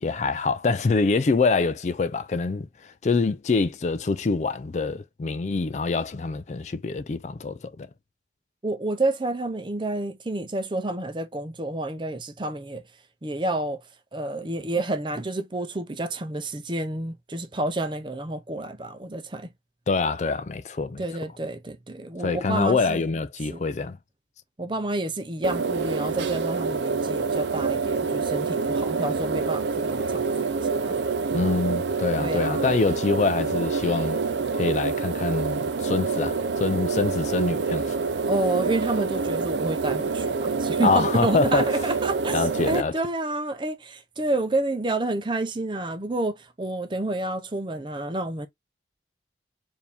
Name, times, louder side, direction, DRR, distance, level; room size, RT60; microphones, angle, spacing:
voice 1, 0.0-7.9 19.9-21.0 22.2-24.0 31.3-34.2 34.6-38.0 40.8-41.6 42.3-43.0, left 4 dB, 40° left, 0.4 m, -25 dB
voice 2, 8.6-12.8 13.2-13.8 14.1-19.5 21.0-23.0 23.5-23.6 24.6-30.9 32.2-32.7 38.3-48.5, right 2 dB, 25° right, 0.6 m, -29 dB
sound 1, 25.4-42.8, right 4 dB, 80° right, 0.5 m, -27 dB
4.7 x 2.7 x 3.4 m
head